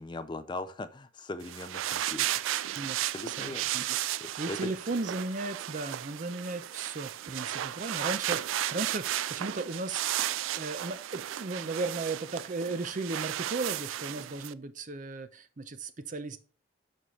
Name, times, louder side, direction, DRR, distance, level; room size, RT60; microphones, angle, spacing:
voice 1, 0.0-2.3 3.0-3.7 4.2-4.7, left 2 dB, 25° left, 12 dB, 0.4 m, -39 dB
sound 1, 1.4-14.5, right 12 dB, 90° right, 0.3 m, -34 dB
voice 2, 2.7-3.8 4.1-16.4, right 3 dB, 40° right, 11 dB, 0.6 m, -36 dB
11.0 x 4.3 x 3.2 m, 0.38 s
head